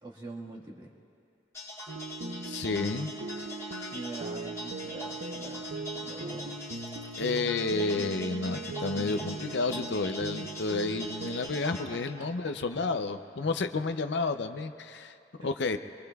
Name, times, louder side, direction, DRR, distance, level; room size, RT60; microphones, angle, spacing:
voice 1, 0.0-0.9 3.9-6.6 11.9-12.9 13.4-13.8 15.4-15.5, right 2 dB, 25° right, -3 dB, 1.6 m, -45 dB
sound 1, 1.5-11.8, left 1 dB, 15° left, 2.3 m, -42 dB
sound 2, 1.9-11.5, right 3 dB, 80° right, 0.6 m, -39 dB
voice 2, 2.5-3.1 7.2-15.1 15.4-15.8, left 3 dB, 65° left, 9 dB, 0.5 m, -31 dB
26.0 x 22.5 x 2.3 m, 2.6 s
head